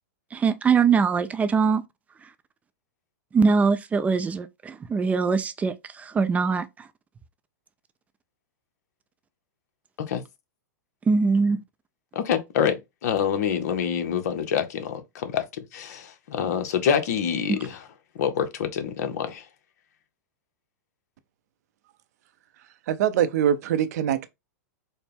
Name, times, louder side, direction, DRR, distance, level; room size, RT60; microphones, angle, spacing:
voice 1, 0.3-1.8 3.3-6.9 11.1-11.6 17.5-17.6, right 5 dB, 15° right, 0.4 m, -22 dB
voice 2, 12.1-15.4 15.7-17.8 18.2-19.4, left 8 dB, 65° left, 0.8 m, -26 dB
voice 3, 22.9-24.3, right 10 dB, 65° right, 0.5 m, -23 dB
4.3 x 2.1 x 3.4 m
hypercardioid pair, 120°, 9 cm